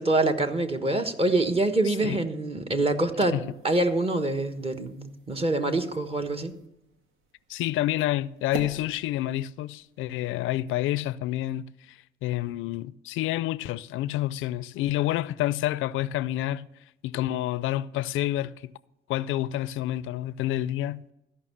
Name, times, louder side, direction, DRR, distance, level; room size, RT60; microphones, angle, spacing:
voice 1, 0.0-6.6, right 2 dB, 30° right, 1.2 m, -25 dB
voice 2, 1.9-2.2 3.3-3.4 7.5-16.7 17.0-18.7 19.1-21.0, left 14 dB, 90° left, 0.4 m, -29 dB
sound 1, 3.4-10.6, right 4 dB, 80° right, 1.3 m, -47 dB
14.0 x 5.6 x 7.1 m
cardioid pair, 90°, 20 cm